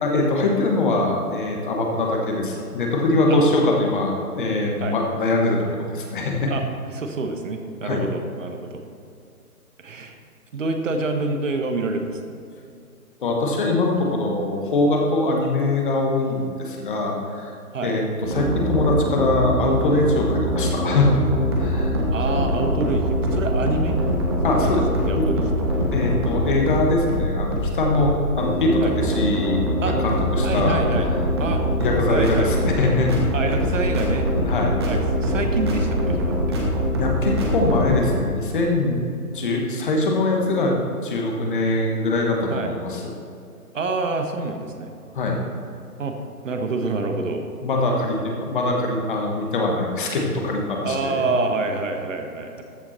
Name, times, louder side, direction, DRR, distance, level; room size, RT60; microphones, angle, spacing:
voice 1, 0.0-6.5 7.8-8.0 13.2-17.5 17.8-22.0 24.4-24.8 25.2-25.3 25.9-30.8 31.5-33.1 34.5-34.8 37.0-39.0 39.3-40.7 41.0-43.0 45.1-45.4 47.6-51.2, left 2 dB, 35° left, 0 dB, 1.4 m, -22 dB
voice 2, 6.9-8.8 9.8-10.2 10.5-12.2 17.7-18.0 22.1-24.0 24.5-24.8 25.1-25.7 28.8-28.9 29.8-30.0 30.4-31.1 31.4-31.6 32.1-32.5 33.3-34.3 34.9-36.6 42.5-42.7 43.7-44.9 46.0-46.2 46.4-47.4 50.8-52.6, right 3 dB, 55° right, 5 dB, 1.2 m, -27 dB
sound 1, 18.2-38.1, equal, 15° right, 0.9 m, -23 dB
13.5 x 5.9 x 4.1 m, 2.6 s
hypercardioid pair, 155°, 46 cm